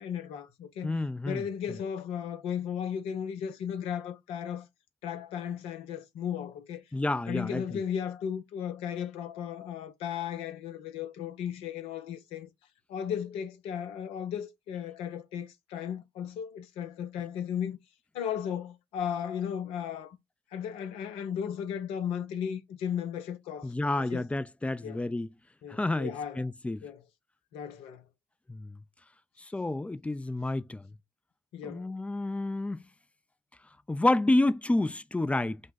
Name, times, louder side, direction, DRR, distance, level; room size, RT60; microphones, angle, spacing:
voice 1, 0.0-1.0 1.2-4.7 5.0-6.8 7.3-12.5 12.9-17.8 18.1-20.2 20.5-24.2 24.8-25.1 25.6-26.4 26.8-27.0 27.5-28.1 31.5-31.9, left 8 dB, 75° left, 0.9 m, -35 dB
voice 2, 0.8-1.4 6.9-7.8 23.6-25.3 25.7-26.8 28.5-28.8 29.4-30.9 31.6-32.8 33.9-35.6, left 2 dB, 10° left, 0.6 m, -29 dB
5.2 x 2.3 x 4.0 m
hypercardioid pair, 55°, 10 cm